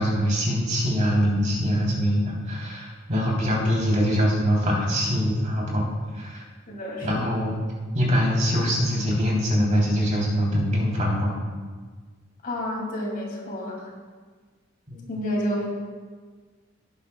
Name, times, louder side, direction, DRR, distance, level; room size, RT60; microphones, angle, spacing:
voice 1, 0.0-5.9 6.1-6.4 7.0-7.6 7.9-11.3 14.9-15.1, equal, 40° right, -3 dB, 3.0 m, -23 dB
voice 2, 6.7-7.2 12.4-13.8 15.1-15.6, equal, 45° left, -2 dB, 2.4 m, -29 dB
17.5 x 9.4 x 2.2 m, 1.5 s
head